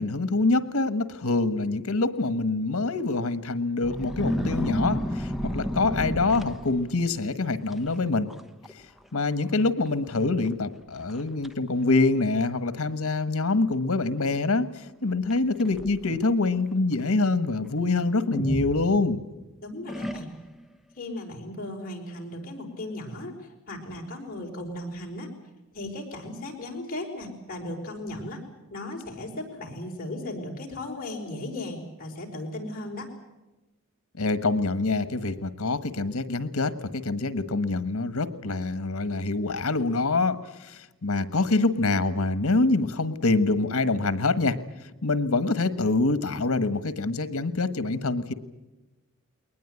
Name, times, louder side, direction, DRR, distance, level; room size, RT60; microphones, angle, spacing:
voice 1, 0.0-8.3 9.1-14.7 15.0-19.2 34.2-44.6 45.0-48.3, left 3 dB, 90° left, 13 dB, 1.4 m, -25 dB
sound 1, 3.8-7.1 7.7-8.0 8.3-8.7 9.0-9.1 9.9-10.0 10.5-10.6 11.1-11.5 12.3-12.4 15.3-16.3 18.3-19.4 19.9-20.6, equal, ahead, 1.0 m, -31 dB
voice 2, 19.6-20.3 20.9-25.3 25.7-28.4 28.7-33.1, left 1 dB, 40° left, 0 dB, 5.0 m, -36 dB
21.5 x 20.0 x 9.5 m, 1.1 s
head